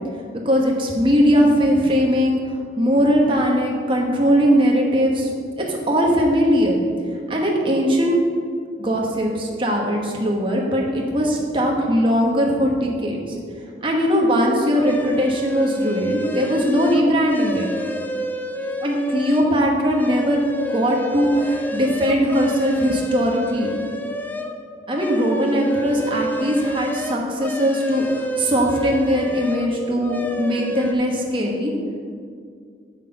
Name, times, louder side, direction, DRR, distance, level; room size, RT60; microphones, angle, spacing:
voice 1, 0.4-5.3 5.6-6.8 7.3-8.2 8.8-13.2 13.8-17.7 18.8-20.5 20.7-23.7 24.9-31.7, equal, 30° right, -1 dB, 1.3 m, -20 dB
sound 1, 14.8-19.5 19.9-24.6 24.9-29.7 30.0-30.9, equal, 10° left, 0.4 m, -29 dB
7.7 x 6.5 x 5.3 m, 2.2 s
head